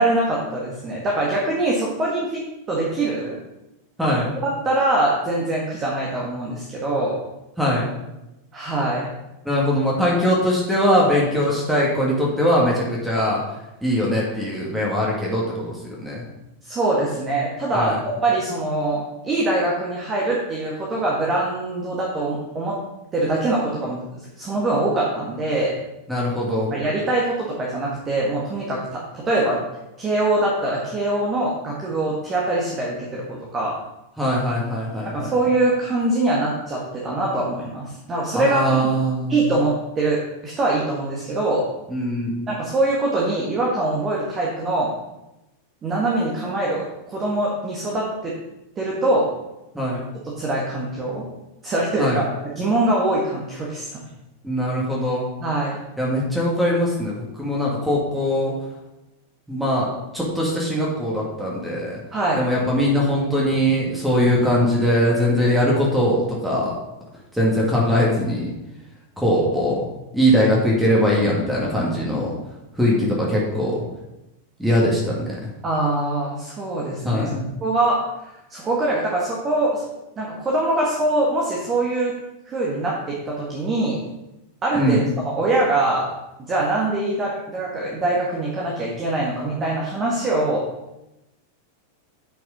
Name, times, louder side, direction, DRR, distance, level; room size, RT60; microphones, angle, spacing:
voice 1, 0.0-2.4 2.7-3.4 4.6-7.2 8.5-9.1 16.6-22.8 23.1-24.0 24.4-25.7 26.7-29.6 30.0-33.2 33.5-33.7 35.0-38.9 39.3-41.6 42.5-44.9 45.8-48.3 48.8-49.3 50.2-51.2 51.6-52.2 52.6-54.0 55.4-55.8 62.1-62.4 75.6-77.3 77.6-79.8 80.2-82.1 82.5-84.0 84.6-86.1 86.4-90.7, right 2 dB, 25° right, -3 dB, 1.9 m, -23 dB
voice 2, 4.0-4.3 7.6-7.9 9.5-16.2 17.7-18.0 26.1-26.7 34.2-35.3 38.3-39.4 41.9-42.5 49.7-50.1 52.0-52.2 54.4-55.3 56.0-58.5 59.5-59.9 60.1-62.0 62.4-66.7 67.3-68.5 69.2-69.9 70.1-72.3 72.7-73.8 74.6-75.5 77.0-77.4 84.7-85.1, equal, 5° right, -5 dB, 2.2 m, -21 dB
9.1 x 5.9 x 5.3 m, 0.95 s
figure-of-eight pair, 90°, 0 cm